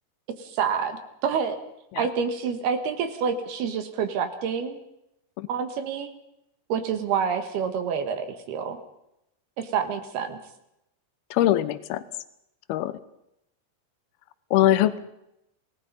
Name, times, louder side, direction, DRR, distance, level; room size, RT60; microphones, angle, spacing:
voice 1, 0.4-1.6 2.0-4.8 5.5-6.1 6.7-8.8 9.6-10.4, right 6 dB, 70° right, 8 dB, 3.5 m, -28 dB
voice 2, 11.3-12.0 12.7-13.0 14.5-15.0, left 13 dB, 75° left, 14 dB, 2.8 m, -22 dB
28.0 x 18.5 x 5.5 m, 0.82 s
omnidirectional pair, 4.8 m